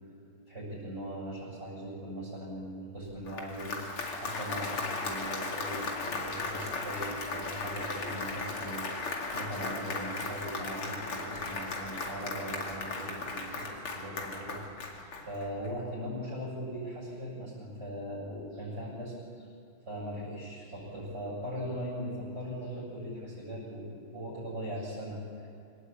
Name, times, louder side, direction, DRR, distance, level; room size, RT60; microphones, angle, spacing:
voice 1, 0.5-3.9 4.2-19.5 19.9-25.5, equal, 30° right, -8 dB, 7.6 m, -40 dB
Applause, 3.1-15.7, left 3 dB, 90° left, 3.2 m, -36 dB
24.5 x 18.0 x 8.6 m, 2.4 s
omnidirectional pair, 2.3 m